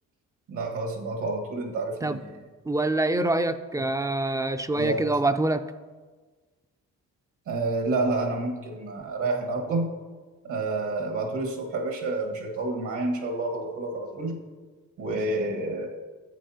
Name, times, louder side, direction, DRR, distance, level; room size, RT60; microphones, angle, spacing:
voice 1, 0.5-2.3 4.7-5.0 7.5-9.9 10.4-14.4 15.0-15.9, right 2 dB, 80° right, 1 dB, 1.7 m, -29 dB
voice 2, 2.7-5.6, right 2 dB, 10° right, 10 dB, 0.3 m, -25 dB
11.0 x 7.9 x 2.8 m, 1.4 s
cardioid pair, 90°, 30 cm